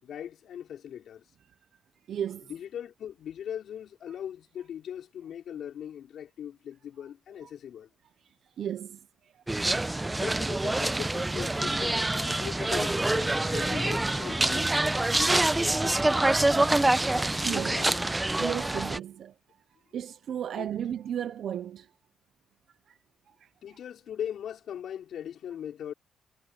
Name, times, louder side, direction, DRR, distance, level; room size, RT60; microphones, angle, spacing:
voice 1, 0.0-1.2 2.5-7.9 10.2-14.7 15.1-16.2 17.3-18.0 20.6-20.7 23.6-25.9, left 9 dB, 65° left, 5.0 m, -39 dB
voice 2, 2.1-2.5 7.4-7.5 8.6-9.0 17.4-17.8 18.4-19.3 19.9-21.9, right 9 dB, 65° right, 0.9 m, -34 dB
sound 1, 9.5-19.0, right 2 dB, 15° right, 0.9 m, -26 dB
cardioid pair, 90°, 0 cm